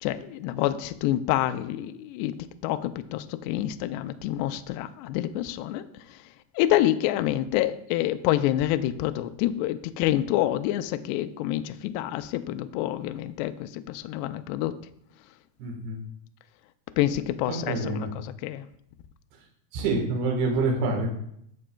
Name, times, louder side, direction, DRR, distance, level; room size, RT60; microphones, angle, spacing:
voice 1, 0.0-2.3 2.6-5.8 6.6-14.8 17.0-18.7, left 13 dB, 90° left, 10 dB, 2.4 m, -27 dB
voice 2, 15.6-16.0 17.5-18.1 19.7-21.1, right 3 dB, 65° right, 1 dB, 3.2 m, -27 dB
13.5 x 7.6 x 2.3 m, 0.70 s
omnidirectional pair, 5.3 m